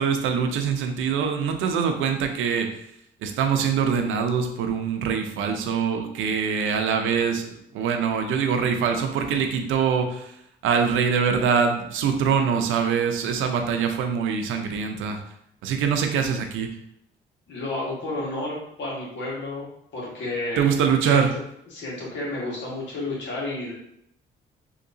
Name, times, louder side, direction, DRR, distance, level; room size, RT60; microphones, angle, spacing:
voice 1, 0.0-2.7 3.2-7.5 7.7-10.3 10.6-15.2 15.6-16.7 20.6-21.3, right 6 dB, 85° right, 5 dB, 0.5 m, -23 dB
voice 2, 17.5-19.7 19.9-20.7 21.0-21.2 21.7-23.7, left 2 dB, 65° left, -4 dB, 1.5 m, -31 dB
3.8 x 2.8 x 2.6 m, 0.74 s
cardioid pair, 90°, 20 cm